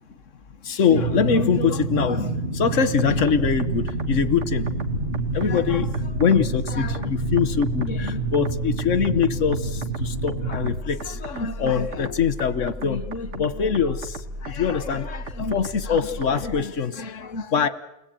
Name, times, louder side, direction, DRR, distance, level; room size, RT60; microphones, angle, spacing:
voice 1, 0.6-4.7 5.3-17.7, left 6 dB, 90° left, 13 dB, 1.6 m, -23 dB
sound 1, 0.9-10.8, right 3 dB, 50° right, 2.4 m, -28 dB
sound 2, 3.0-16.6, right 1 dB, 70° right, 2.4 m, -36 dB
30.0 x 21.0 x 9.3 m, 0.91 s
omnidirectional pair, 1.3 m